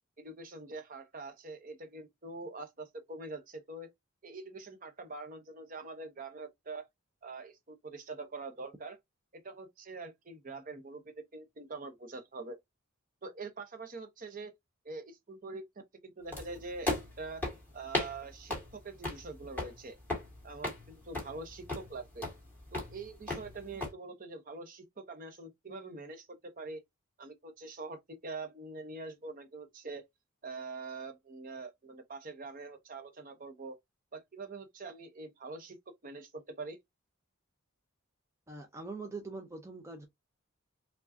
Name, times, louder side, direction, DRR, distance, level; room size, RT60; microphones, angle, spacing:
voice 1, 0.2-3.9 4.2-6.9 7.2-9.0 9.4-12.6 13.2-14.5 14.8-15.6 16.2-17.4 17.7-20.0 20.4-22.3 22.7-26.8 27.2-30.0 30.4-33.8 34.1-35.8 36.0-36.8, right 3 dB, 40° right, 0.8 m, -44 dB
sound 1, 16.3-23.9, left 2 dB, 10° left, 1.9 m, -38 dB
voice 2, 38.5-40.1, right 3 dB, 15° right, 0.5 m, -43 dB
4.7 x 2.3 x 2.6 m
head